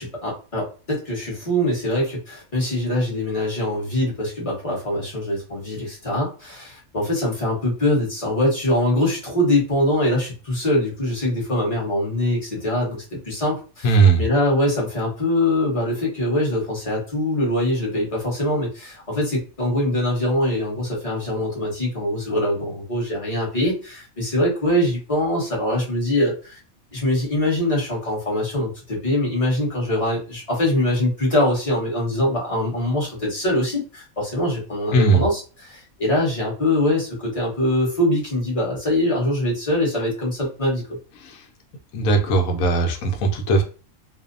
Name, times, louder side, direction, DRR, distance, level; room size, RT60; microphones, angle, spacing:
voice 1, 0.0-26.6 26.9-40.8, left 1 dB, 25° left, -4 dB, 0.9 m, -23 dB
voice 2, 13.8-14.2 34.9-35.2 41.2-41.4 41.9-43.6, right 3 dB, 80° left, 3 dB, 1.0 m, -18 dB
2.6 x 2.0 x 2.5 m, 0.35 s
omnidirectional pair, 1.5 m